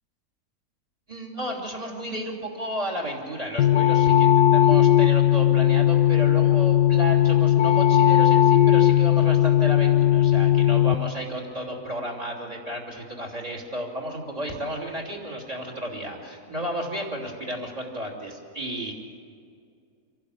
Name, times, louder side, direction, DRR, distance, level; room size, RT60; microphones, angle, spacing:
voice 1, 1.1-18.9, equal, 25° right, -1 dB, 3.3 m, -33 dB
sound 1, 3.6-11.0, left 11 dB, 90° left, 1.2 m, -18 dB
26.5 x 11.5 x 8.5 m, 2.3 s
omnidirectional pair, 1.7 m